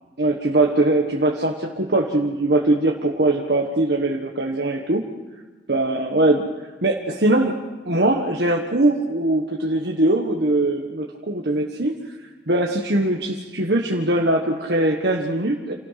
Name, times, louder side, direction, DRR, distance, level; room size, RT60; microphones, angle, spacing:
voice 1, 0.2-5.0 5.7-6.5 6.8-7.6 7.9-11.9 12.5-15.7, right 2 dB, 70° right, 0 dB, 1.6 m, -21 dB
28.0 x 17.5 x 5.8 m, 1.3 s
head